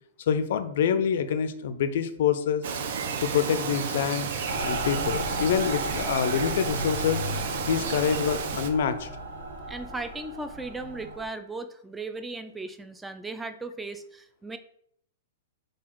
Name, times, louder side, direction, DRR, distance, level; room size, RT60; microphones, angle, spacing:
voice 1, 0.2-2.6 3.2-4.3 4.6-7.2 7.7-9.1, left 7 dB, 65° left, 11 dB, 0.4 m, -26 dB
Bird vocalization bird call bird song, 2.6-8.7, right 6 dB, 60° right, 0.5 m, -32 dB
Mechanical fan, 4.5-11.3, right 1 dB, 85° right, 1.0 m, -34 dB
voice 2, 9.7-14.6, right 3 dB, 5° right, 9 dB, 0.3 m, -37 dB
3.8 x 2.3 x 4.5 m, 0.67 s
hypercardioid pair, 145°, 0 cm